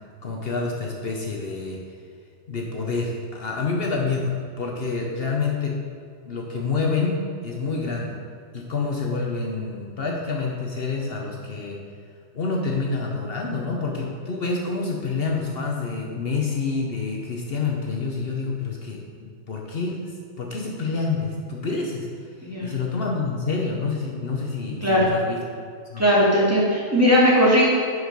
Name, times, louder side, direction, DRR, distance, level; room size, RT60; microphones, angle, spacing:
voice 1, 0.2-1.8 2.5-5.8 6.3-8.2 8.5-11.8 12.3-22.1 22.6-25.4 25.9-26.0, left 4 dB, 60° left, 0 dB, 1.1 m, -27 dB
voice 2, 22.4-22.7 24.8-25.1 26.0-27.7, equal, 15° right, -7 dB, 2.3 m, -18 dB
11.0 x 4.9 x 5.3 m, 2.3 s
omnidirectional pair, 1.2 m